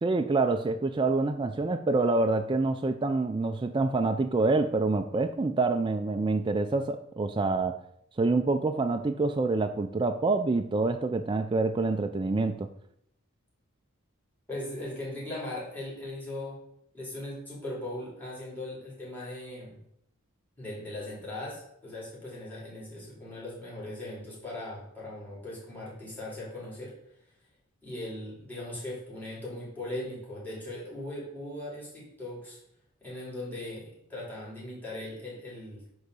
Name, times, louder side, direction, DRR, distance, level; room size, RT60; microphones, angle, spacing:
voice 1, 0.0-7.8 8.2-12.7, right 3 dB, 20° right, 6 dB, 0.4 m, -26 dB
voice 2, 14.5-16.6 16.9-19.8 20.6-26.9 27.8-32.6 33.0-35.8, left 1 dB, 10° left, -6 dB, 3.9 m, -39 dB
9.9 x 4.0 x 6.7 m, 0.74 s
head